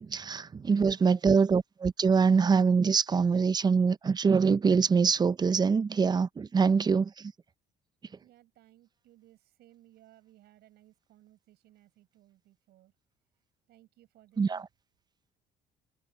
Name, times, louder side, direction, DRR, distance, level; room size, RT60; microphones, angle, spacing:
voice 1, 0.0-7.3 14.4-14.6, right 5 dB, 25° right, 0.5 m, -24 dB
voice 2, 0.6-1.1 8.2-12.9 13.7-14.6, right 14 dB, 75° right, 6.0 m, -61 dB
cardioid pair, 110°, 17 cm